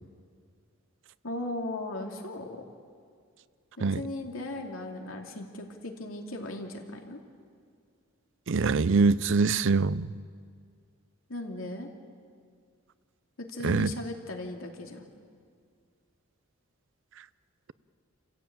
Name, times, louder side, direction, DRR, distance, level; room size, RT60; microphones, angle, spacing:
voice 1, 1.2-2.6 3.8-7.2 11.3-11.9 13.4-15.1, left 2 dB, 85° left, 2.8 m, -37 dB
voice 2, 8.5-10.1 13.6-13.9, right 4 dB, 65° right, 0.6 m, -24 dB
29.0 x 15.0 x 8.9 m
head